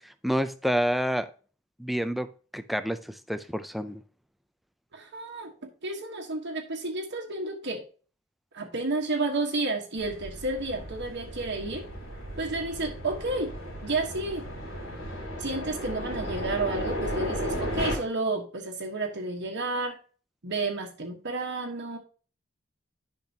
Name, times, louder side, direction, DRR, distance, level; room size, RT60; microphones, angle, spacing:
voice 1, 0.2-1.3 1.8-2.3 2.5-4.0, equal, ahead, 11 dB, 0.5 m, -28 dB
voice 2, 4.9-5.5 5.8-7.8 8.5-11.8 12.4-13.5 13.8-14.4 15.4-20.0 20.4-22.0, right 2 dB, 60° right, 2 dB, 1.3 m, -31 dB
sound 1, 10.0-18.0, equal, 85° left, 4.2 m, -34 dB
10.5 x 5.9 x 2.8 m, 0.38 s
head